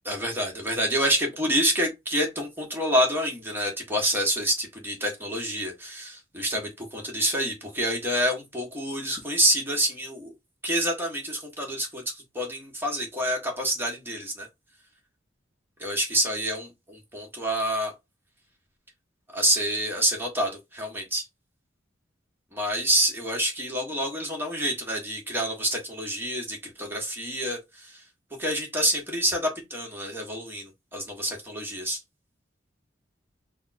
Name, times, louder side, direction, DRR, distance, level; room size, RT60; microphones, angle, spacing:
voice 1, 0.0-10.3 10.6-14.5 15.8-17.9 19.3-21.2 22.5-28.0 28.4-32.0, right 1 dB, 10° right, 1.6 m, -27 dB
3.8 x 2.4 x 4.2 m
head